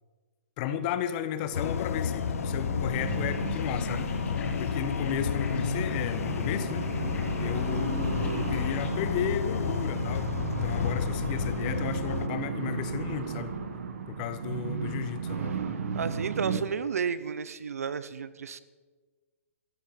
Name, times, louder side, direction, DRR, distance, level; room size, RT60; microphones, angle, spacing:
voice 1, 0.6-4.1 4.6-6.9 7.4-13.5 14.1-15.5, left 9 dB, 35° left, 11 dB, 1.3 m, -34 dB
sound 1, 1.4-16.6, right 6 dB, 65° right, 1.9 m, -35 dB
sound 2, 1.5-12.3, left 8 dB, 75° left, 0.5 m, -31 dB
sound 3, 2.9-8.9, left 5 dB, 15° left, 2.4 m, -48 dB
voice 2, 15.9-18.6, right 6 dB, 80° right, 15 dB, 1.0 m, -32 dB
16.0 x 14.5 x 5.3 m, 1.4 s
hypercardioid pair, 145°, 8 cm